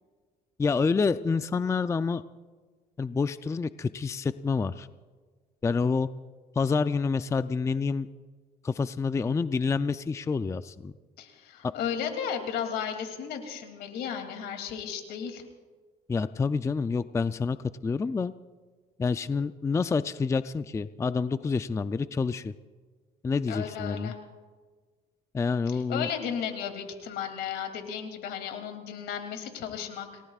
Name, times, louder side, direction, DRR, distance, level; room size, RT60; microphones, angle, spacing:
voice 1, 0.6-2.2 3.0-4.9 5.6-6.1 6.6-8.1 8.6-10.9 16.1-17.6 17.8-18.3 19.0-22.5 23.2-24.1 25.3-26.1, left 4 dB, 15° left, 12 dB, 0.4 m, -28 dB
voice 2, 11.2-15.4 23.5-24.2 25.7-30.2, left 8 dB, 80° left, 5 dB, 2.7 m, -34 dB
29.0 x 18.5 x 2.4 m, 1.4 s
cardioid pair, 110°, 17 cm